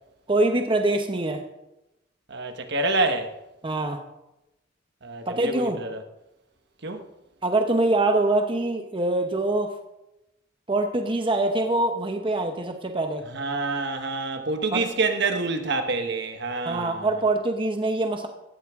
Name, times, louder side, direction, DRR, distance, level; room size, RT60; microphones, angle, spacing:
voice 1, 0.3-1.4 3.6-4.0 5.3-5.8 7.4-9.7 10.7-13.2 14.7-14.8 16.6-18.3, right 2 dB, 25° right, 1.0 m, -24 dB
voice 2, 2.3-3.3 5.0-6.0 6.8-7.0 13.3-17.1, right 3 dB, 65° right, 1.3 m, -27 dB
17.0 x 13.5 x 3.7 m
head